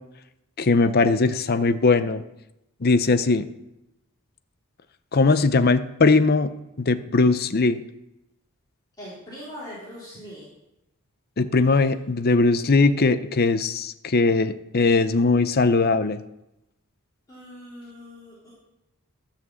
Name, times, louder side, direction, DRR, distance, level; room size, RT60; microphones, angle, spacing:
voice 1, 0.6-2.2 2.8-3.5 5.1-6.5 6.8-7.8 11.4-16.2, left 3 dB, 45° left, 12 dB, 0.6 m, -20 dB
voice 2, 9.0-10.5 11.7-11.9 17.3-18.5, equal, 15° left, -10 dB, 3.3 m, -41 dB
12.5 x 5.9 x 7.3 m, 0.90 s
head